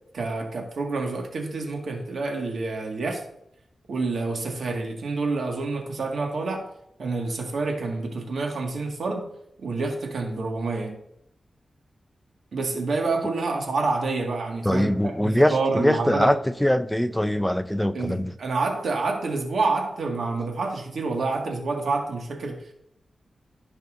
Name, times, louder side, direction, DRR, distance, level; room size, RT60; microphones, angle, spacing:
voice 1, 0.1-3.2 3.9-6.7 7.0-9.3 9.6-11.0 12.5-16.3 17.9-22.7, right 3 dB, 80° right, 1.8 m, -28 dB
voice 2, 14.6-18.3, left 1 dB, 5° left, 0.4 m, -22 dB
14.5 x 5.5 x 2.6 m
wide cardioid pair, 130°, 0 cm